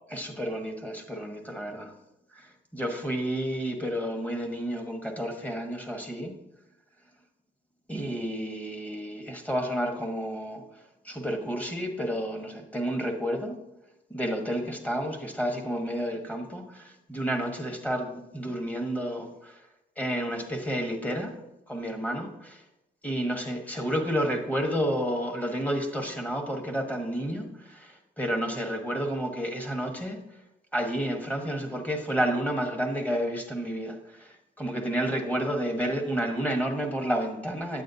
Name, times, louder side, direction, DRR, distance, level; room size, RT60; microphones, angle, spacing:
voice 1, 0.1-1.9 2.3-6.4 7.9-10.6 11.0-13.6 14.1-19.6 20.0-21.3 21.7-22.6 23.0-30.2 30.7-37.8, equal, 5° left, 3 dB, 1.3 m, -30 dB
8.6 x 8.5 x 2.8 m, 0.93 s
cardioid pair, 90°, 20 cm